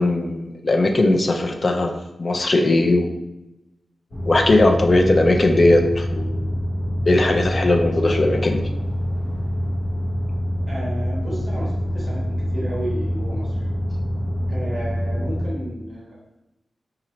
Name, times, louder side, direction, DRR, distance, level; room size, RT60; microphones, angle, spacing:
voice 1, 0.0-3.1 4.2-6.4 7.1-8.6, left 2 dB, 30° left, 4 dB, 0.3 m, -18 dB
sound 1, 4.1-15.5, equal, 50° left, 0.9 m, -25 dB
voice 2, 10.7-13.7 14.5-16.2, right 1 dB, 25° right, -7 dB, 1.1 m, -32 dB
4.1 x 2.4 x 2.9 m, 0.95 s
wide cardioid pair, 175°, 0 cm